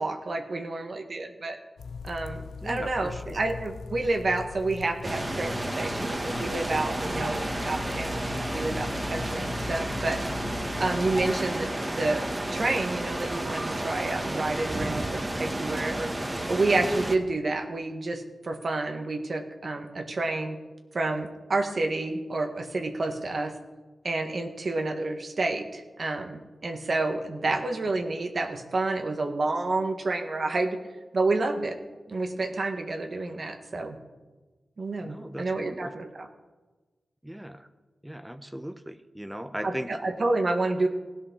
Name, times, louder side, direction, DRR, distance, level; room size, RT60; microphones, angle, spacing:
voice 1, 0.0-1.6 2.0-10.2 10.8-12.2 12.5-16.1 16.5-20.6 20.9-23.5 24.0-31.8 32.1-34.0 34.8-36.3 39.6-40.9, right 2 dB, 60° right, 4 dB, 1.6 m, -29 dB
sound 1, 1.8-11.4, left 4 dB, 85° left, 0.6 m, -39 dB
voice 2, 2.6-3.4 27.4-27.6 35.0-35.9 37.2-37.7 38.0-40.0, equal, 10° right, 10 dB, 1.0 m, -38 dB
sound 2, 5.0-17.2, right 1 dB, 25° right, 1.8 m, -31 dB
16.0 x 8.9 x 6.3 m, 1.2 s
supercardioid pair, 40°, 0 cm